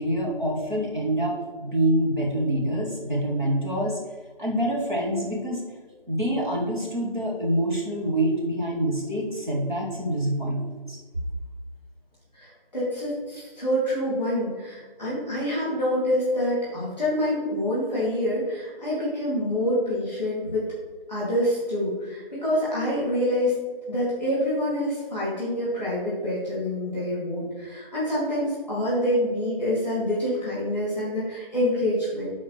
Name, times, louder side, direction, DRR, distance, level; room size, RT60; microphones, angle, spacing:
voice 1, 0.0-4.0 4.4-5.6 6.1-11.0, right 1 dB, 55° right, -3 dB, 1.9 m, -26 dB
voice 2, 12.3-20.7 21.1-23.5 23.9-32.3, left 1 dB, ahead, -9 dB, 2.1 m, -26 dB
9.7 x 4.1 x 3.3 m, 1.4 s
figure-of-eight pair, 165°, 29 cm